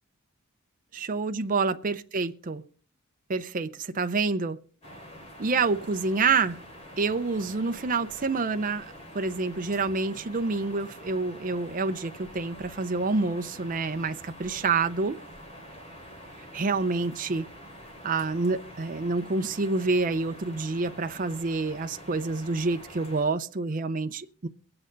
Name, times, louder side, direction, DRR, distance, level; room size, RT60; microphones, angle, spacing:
voice 1, 0.9-2.6 3.3-4.6 5.4-6.6 7.0-8.9 9.1-15.2 16.5-17.5 18.0-24.5, right 4 dB, 40° right, 0.6 m, -28 dB
sound 1, 4.8-23.2, equal, 30° left, 2.9 m, -46 dB
23.0 x 8.8 x 3.9 m
head